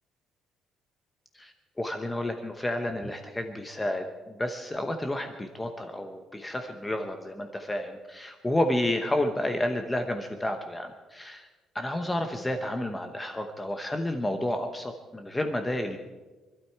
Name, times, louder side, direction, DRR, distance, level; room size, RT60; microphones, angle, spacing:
voice 1, 1.3-11.5 11.7-16.0, left 1 dB, 10° left, 6 dB, 0.8 m, -31 dB
25.0 x 12.0 x 4.7 m, 1.3 s
cardioid pair, 170°, 0 cm